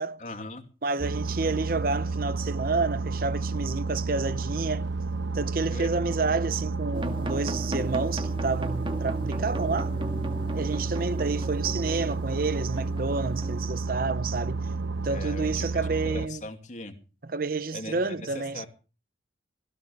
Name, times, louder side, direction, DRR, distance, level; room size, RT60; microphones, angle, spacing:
voice 1, 0.2-0.6 5.7-6.1 15.1-17.0 17.7-18.7, left 2 dB, 40° left, 2.6 m, -40 dB
voice 2, 0.8-4.8 5.3-9.9 10.5-14.6 15.0-16.4 17.3-18.6, right 3 dB, 50° right, 0.7 m, -29 dB
sound 1, 1.0-16.3, right 3 dB, 75° right, 0.9 m, -31 dB
sound 2, 6.9-13.7, equal, 30° right, 1.9 m, -37 dB
19.0 x 16.5 x 3.4 m
head